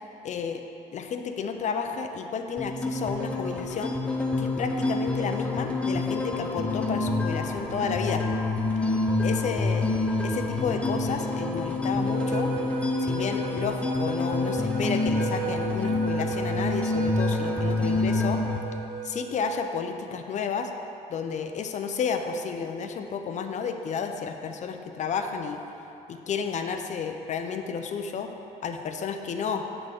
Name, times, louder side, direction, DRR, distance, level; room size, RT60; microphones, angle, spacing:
voice 1, 0.2-0.6 0.9-8.2 9.2-9.9 10.2-12.5 13.0-18.4 19.0-20.7 21.1-25.6 26.1-28.3 28.6-29.7, left 6 dB, 45° left, 5 dB, 0.6 m, -31 dB
sound 1, 2.6-18.6, left 2 dB, 5° left, 0.7 m, -27 dB
sound 2, 12.0-19.8, right 7 dB, 70° right, 0.6 m, -36 dB
7.9 x 3.7 x 6.4 m, 3.0 s
cardioid pair, 110°, 17 cm